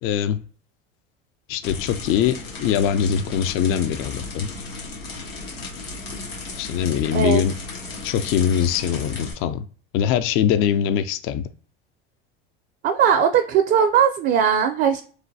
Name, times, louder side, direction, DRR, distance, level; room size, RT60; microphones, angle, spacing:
voice 1, 0.0-0.4 1.5-2.3 2.6-4.5 6.6-7.5 8.0-9.6 9.9-11.5, left 9 dB, 45° left, 11 dB, 0.4 m, -22 dB
sound 1, 1.6-9.3, left 3 dB, 85° left, 1.2 m, -35 dB
voice 2, 7.1-7.4 12.8-15.0, right 8 dB, 35° right, 6 dB, 0.4 m, -19 dB
3.0 x 2.1 x 2.7 m, 0.42 s
hypercardioid pair, 85°, 30 cm